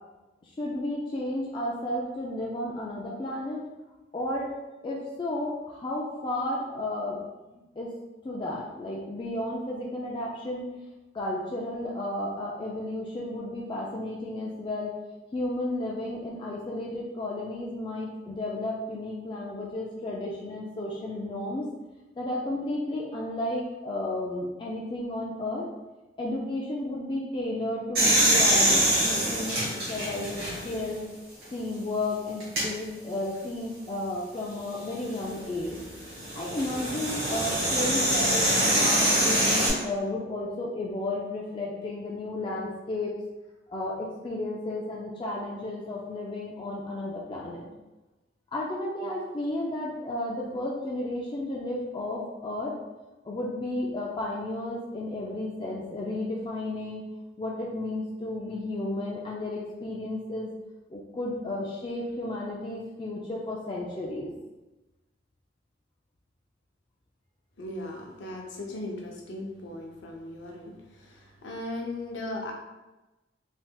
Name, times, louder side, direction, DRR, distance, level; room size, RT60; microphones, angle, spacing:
voice 1, 0.4-3.7 4.1-4.5 4.8-7.2 7.5-7.9 8.2-10.7 11.1-14.9 15.3-21.7 22.2-25.7 26.2-31.1 31.5-35.8 36.3-43.1 43.7-47.7 48.5-52.7 53.2-57.0 57.4-60.5 60.9-64.3, left 1 dB, 25° left, -4 dB, 0.3 m, -33 dB
sound 1, 27.9-30.9 31.4-31.5 32.4-32.7 34.8-39.7, right 1 dB, 55° right, 1.2 m, -25 dB
voice 2, 67.6-72.5, left 1 dB, 80° left, 0 dB, 0.6 m, -37 dB
3.2 x 2.8 x 2.2 m, 1.1 s
head